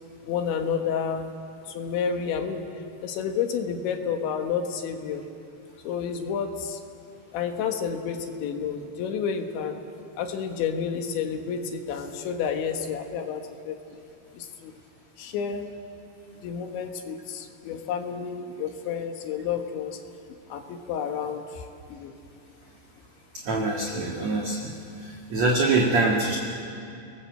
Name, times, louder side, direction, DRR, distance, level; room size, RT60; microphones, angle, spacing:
voice 1, 0.3-1.3 1.7-2.7 3.0-5.2 5.8-6.8 7.3-9.8 10.2-13.8 14.3-14.7 15.2-15.7 16.4-20.0 20.5-22.1, left 7 dB, 85° left, 4 dB, 3.8 m, -30 dB
voice 2, 23.4-24.7 25.0-26.4, right 3 dB, 50° right, -1 dB, 2.3 m, -24 dB
30.0 x 20.0 x 7.7 m, 2.6 s
omnidirectional pair, 5.1 m